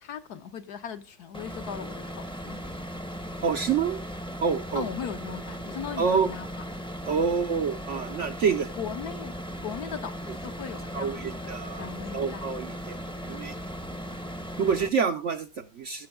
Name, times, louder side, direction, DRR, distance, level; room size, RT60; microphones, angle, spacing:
voice 1, 0.0-2.6 4.7-6.5 8.8-9.3 9.6-12.5, left 8 dB, 65° left, 8 dB, 1.5 m, -38 dB
sound 1, 1.3-14.9, equal, 5° left, 0.7 m, -37 dB
voice 2, 3.4-4.0 4.4-4.8 6.0-6.3 7.1-8.7 10.9-13.0 13.2-13.5 14.6-16.1, right 6 dB, 60° right, 8 dB, 0.8 m, -27 dB
17.0 x 6.3 x 3.6 m, 0.27 s
omnidirectional pair, 1.8 m